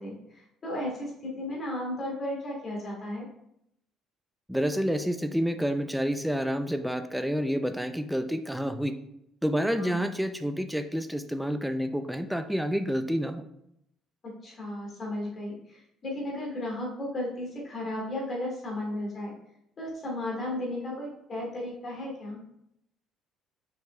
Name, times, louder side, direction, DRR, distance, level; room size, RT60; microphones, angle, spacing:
voice 1, 0.0-3.3 9.8-10.0 14.2-19.3 19.8-22.4, left 1 dB, 35° left, -2 dB, 2.4 m, -34 dB
voice 2, 4.5-9.0 9.4-13.4, equal, ahead, 8 dB, 0.4 m, -29 dB
5.8 x 5.2 x 3.3 m, 0.78 s
cardioid pair, 125°, 0 cm